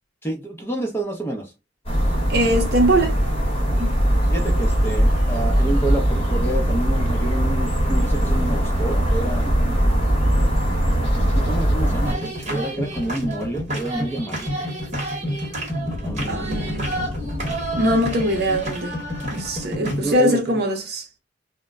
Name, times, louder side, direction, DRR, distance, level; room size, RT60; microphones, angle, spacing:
voice 1, 0.2-1.5 4.3-9.5 11.3-14.7 15.9-16.7 17.5-18.1 19.7-20.6, right 2 dB, 10° left, 0.6 m, -29 dB
sound 1, 1.9-12.1, equal, 30° left, 1.0 m, -20 dB
voice 2, 2.3-3.2 3.8-4.0 16.3-16.9 17.8-18.9 19.3-21.1, equal, 55° right, 0.6 m, -21 dB
sound 2, 12.0-20.1, equal, 35° right, 1.0 m, -28 dB
2.1 x 2.1 x 3.5 m
head